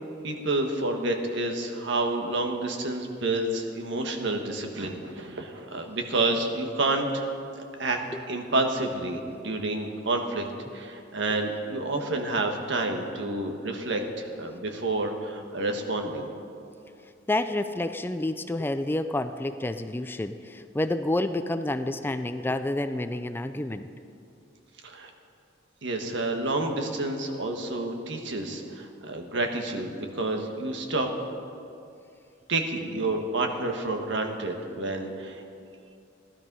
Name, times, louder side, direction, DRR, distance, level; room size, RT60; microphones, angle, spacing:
voice 1, 0.2-7.3 7.8-10.5 10.7-16.3 24.8-25.1 25.8-31.1 32.5-35.4, right 2 dB, 65° right, 4 dB, 1.5 m, -29 dB
voice 2, 17.3-23.9, left 1 dB, 10° left, 10 dB, 0.4 m, -29 dB
16.0 x 12.0 x 5.4 m, 2.5 s
head